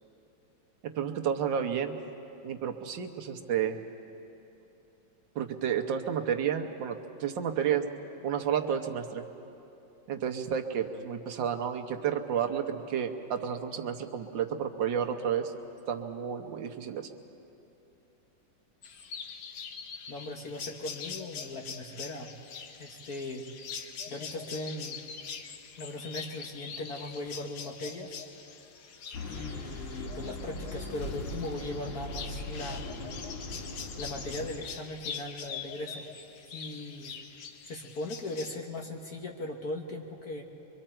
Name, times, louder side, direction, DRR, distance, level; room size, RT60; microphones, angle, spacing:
voice 1, 0.9-2.0 2.4-3.8 5.3-7.8 8.2-9.2 10.1-15.5 15.9-17.1, right 8 dB, 75° right, 5 dB, 1.7 m, -31 dB
sound 1, 18.8-38.6, left 6 dB, 75° left, 1.6 m, -43 dB
voice 2, 20.1-22.3 22.8-23.4 24.1-25.0 25.8-28.2 29.2-33.0 34.0-36.1 36.5-37.1 37.7-40.4, left 2 dB, 55° left, 1 dB, 1.6 m, -39 dB
sound 2, 29.1-34.5, left 2 dB, 35° left, 1.3 m, -39 dB
24.5 x 24.0 x 4.4 m, 2.9 s
omnidirectional pair, 2.1 m